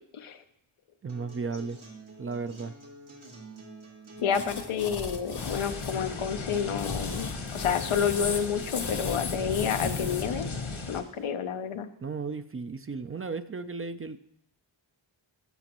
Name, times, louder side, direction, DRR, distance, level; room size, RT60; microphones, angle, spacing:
voice 1, 1.0-1.8 2.2-2.7 12.0-14.2, right 4 dB, 30° right, 11 dB, 0.4 m, -35 dB
Acoustic guitar, 1.1-9.1, right 1 dB, 80° right, 2.2 m, -48 dB
voice 2, 4.2-10.5 10.9-11.9, left 7 dB, 85° left, 8 dB, 0.7 m, -29 dB
sound 1, 4.3-6.0 6.6-10.2, left 5 dB, 55° left, 0.9 m, -37 dB
sound 2, 5.4-11.0, left 3 dB, 70° left, 1.3 m, -36 dB
15.0 x 5.1 x 3.0 m, 0.78 s
cardioid pair, 45°, 48 cm